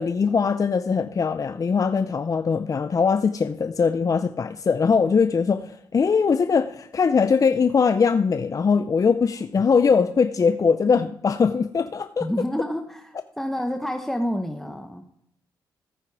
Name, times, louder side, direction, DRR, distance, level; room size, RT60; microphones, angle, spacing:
voice 1, 0.0-12.3, left 5 dB, 40° left, 0.5 m, -21 dB
voice 2, 12.2-15.0, equal, 5° left, 1.0 m, -28 dB
14.5 x 8.9 x 4.8 m
cardioid pair, 65°, 9 cm